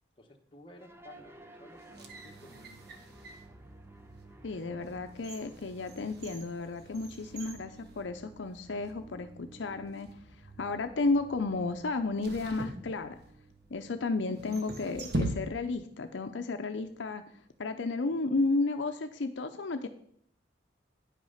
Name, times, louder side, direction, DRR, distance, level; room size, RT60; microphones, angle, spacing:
voice 1, 0.2-3.2, left 1 dB, 25° left, 2 dB, 1.2 m, -55 dB
sound 1, 0.8-19.1, right 2 dB, 15° right, 0.7 m, -55 dB
sound 2, 1.8-3.5 4.1-4.3 4.8-8.6 8.9-9.0 9.8-10.2 12.2-13.5 14.3-15.9 16.2-16.3, right 1 dB, 55° right, 1.1 m, -40 dB
voice 2, 4.4-10.2 10.6-13.2 13.7-17.2 17.6-19.9, left 3 dB, 70° left, 7 dB, 0.6 m, -33 dB
9.9 x 5.9 x 5.7 m, 0.63 s
head